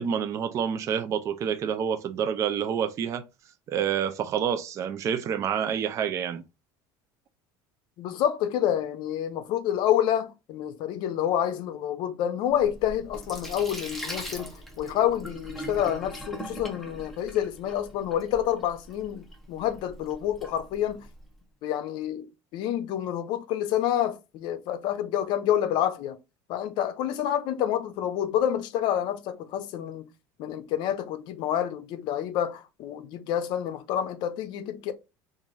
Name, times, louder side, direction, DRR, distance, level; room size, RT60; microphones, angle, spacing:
voice 1, 0.0-3.2 3.7-6.4, right 8 dB, 35° right, 0.4 m, -28 dB
voice 2, 8.0-21.1 21.6-22.3 22.5-26.2 26.5-30.1 30.4-34.9, left 10 dB, 60° left, 0.6 m, -28 dB
Sink (filling or washing), 12.5-21.3, equal, ahead, 0.8 m, -41 dB
2.9 x 2.5 x 3.9 m
cardioid pair, 140°, 9 cm